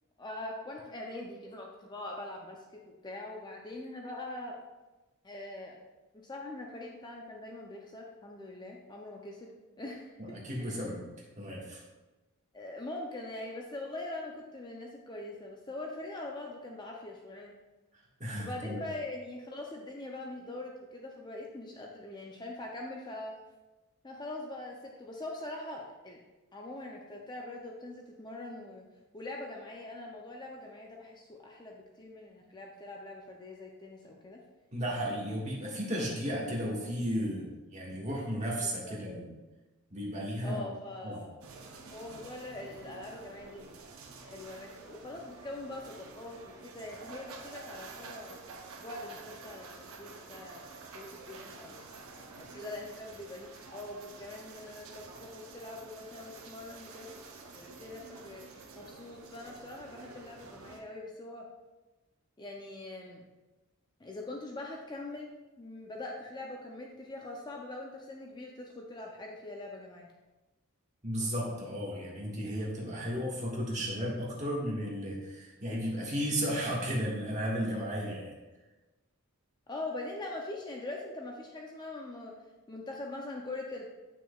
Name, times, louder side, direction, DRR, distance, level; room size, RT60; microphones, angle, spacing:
voice 1, 0.2-4.5 5.2-5.8 6.2-9.5 9.8-10.8 12.5-17.5 18.4-23.3 24.0-26.2 26.5-28.8 29.1-34.4 38.6-39.0 40.4-41.4 41.8-43.8 44.2-48.4 48.8-50.6 50.9-51.8 52.3-57.1 57.5-58.4 58.8-61.5 62.4-63.2 64.0-65.3 65.6-70.1 79.7-82.3 82.7-83.9, left 2 dB, 20° left, 0 dB, 0.5 m, -43 dB
voice 2, 10.2-11.0 11.4-11.8 18.2-18.8 34.7-39.3 39.9-40.6 41.0-41.2 71.0-78.3, equal, 35° right, -5 dB, 1.7 m, -34 dB
sound 1, 41.4-60.8, right 3 dB, 70° right, 0.8 m, -49 dB
8.9 x 6.0 x 2.4 m, 1.1 s
head